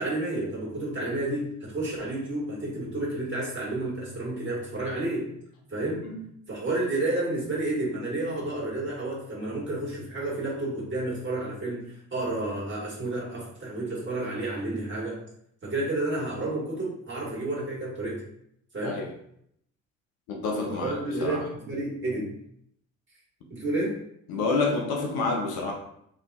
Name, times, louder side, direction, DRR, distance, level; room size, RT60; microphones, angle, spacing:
voice 1, 0.0-5.3 5.7-6.0 6.5-15.2 15.6-18.2 18.7-19.0 20.7-22.3 23.5-24.0, right 2 dB, 30° right, -6 dB, 1.5 m, -30 dB
voice 2, 20.3-20.9 21.2-21.4 24.3-25.7, left 3 dB, 65° left, 0 dB, 0.7 m, -28 dB
2.7 x 2.5 x 2.2 m, 0.72 s
hypercardioid pair, 50°, 41 cm